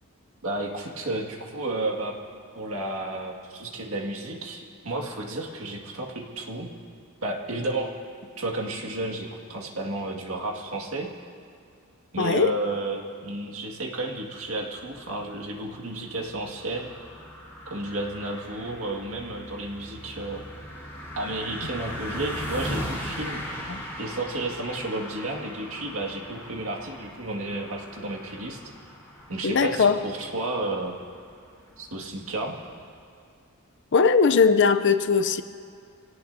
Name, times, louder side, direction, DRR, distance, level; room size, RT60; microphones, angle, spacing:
voice 1, 0.4-2.1 2.6-6.7 7.2-7.9 8.4-11.1 12.1-16.9 17.7-20.5 21.2-23.4 24.0-28.6 29.3-30.9 31.8-32.5, right 2 dB, 70° right, 0 dB, 2.0 m, -32 dB
voice 2, 12.2-12.5 23.7-23.8 29.4-30.0 33.9-35.4, left 5 dB, 55° left, 10 dB, 0.6 m, -20 dB
sound 1, 14.4-33.0, equal, 15° left, 4.4 m, -39 dB
25.5 x 18.0 x 2.7 m, 2.3 s
head